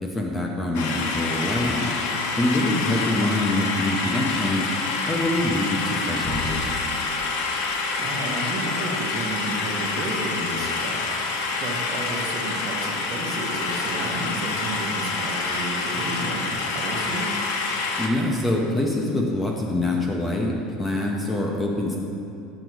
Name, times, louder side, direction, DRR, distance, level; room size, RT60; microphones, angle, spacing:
voice 1, 0.0-2.0 2.4-4.7 5.1-6.7 18.0-22.0, left 1 dB, 10° left, 0 dB, 0.5 m, -25 dB
sound 1, 0.7-18.1, left 4 dB, 80° left, 0.7 m, -27 dB
sound 2, 6.2-7.6, left 1 dB, 30° left, 1.2 m, -36 dB
voice 2, 8.0-11.0 11.6-17.3, right 2 dB, 35° right, 0 dB, 0.9 m, -32 dB
8.0 x 5.1 x 4.5 m, 2.7 s
cardioid pair, 170°, 0 cm